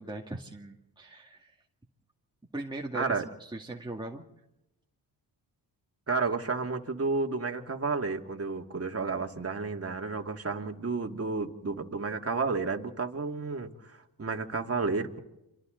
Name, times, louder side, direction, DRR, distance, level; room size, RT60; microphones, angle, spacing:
voice 1, 0.0-1.6 2.5-4.2, right 2 dB, 10° right, 0 dB, 2.1 m, -39 dB
voice 2, 2.9-3.3 6.1-15.2, right 4 dB, 35° right, 4 dB, 2.4 m, -31 dB
29.5 x 25.0 x 3.9 m, 0.91 s
cardioid pair, 60°, 42 cm